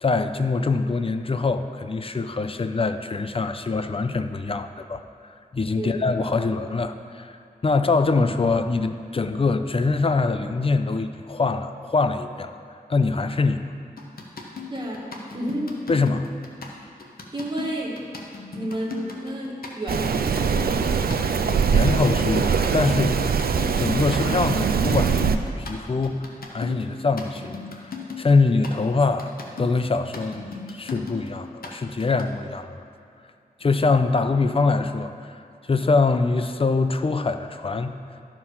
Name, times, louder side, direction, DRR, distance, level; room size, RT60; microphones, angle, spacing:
voice 1, 0.0-7.4 7.6-12.5 12.9-13.6 15.9-16.3 21.7-23.2 23.8-26.2 26.5-32.8 33.6-35.4 35.7-37.9, left 3 dB, 35° left, 9 dB, 0.5 m, -24 dB
sound 1, 14.0-32.3, left 4 dB, 70° left, 1.1 m, -37 dB
voice 2, 14.7-15.1 15.3-15.7 16.8-16.9 17.3-18.0 18.5-22.0, right 1 dB, 30° right, -3 dB, 1.8 m, -32 dB
Rain, 19.9-25.4, right 6 dB, 75° right, 0.5 m, -22 dB
12.5 x 4.8 x 5.6 m, 2.5 s
wide cardioid pair, 95°, 16 cm